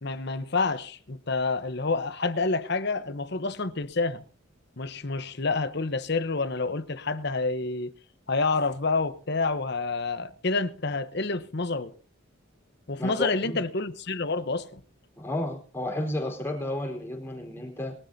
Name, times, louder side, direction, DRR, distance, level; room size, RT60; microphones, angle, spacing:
voice 1, 0.0-4.2 4.8-7.9 8.3-11.9 12.9-14.8, left 3 dB, 55° left, 1.0 m, -28 dB
voice 2, 13.0-13.6 15.2-17.9, left 1 dB, 10° left, 4.5 m, -32 dB
22.5 x 13.0 x 2.8 m
head